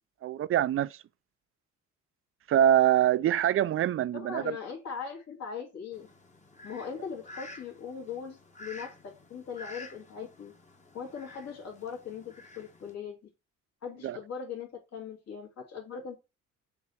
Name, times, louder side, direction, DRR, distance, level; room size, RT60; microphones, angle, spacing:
voice 1, 0.2-1.0 2.5-4.6 14.0-14.2, right 11 dB, 45° right, 0.4 m, -24 dB
voice 2, 4.1-6.1 6.6-10.5 10.9-13.2 13.8-16.2, left 6 dB, 60° left, 2.6 m, -40 dB
Fowl, 5.9-12.9, left 2 dB, 25° left, 1.2 m, -50 dB
7.1 x 2.9 x 4.7 m
cardioid pair, 90°, 30 cm